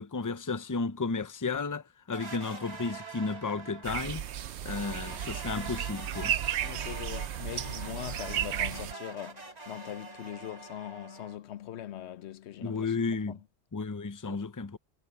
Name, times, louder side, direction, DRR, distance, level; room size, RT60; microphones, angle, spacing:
voice 1, 0.0-4.2 4.6-6.3 12.6-13.4 13.7-14.8, left 4 dB, 20° left, 0.6 m, -33 dB
sound 1, 2.1-4.0 4.6-11.4, right 4 dB, 40° right, 1.9 m, -44 dB
sound 2, 3.8-8.9, right 10 dB, 85° right, 0.9 m, -34 dB
voice 2, 6.6-13.4 14.2-14.5, left 11 dB, 90° left, 0.9 m, -41 dB
omnidirectional pair, 1.1 m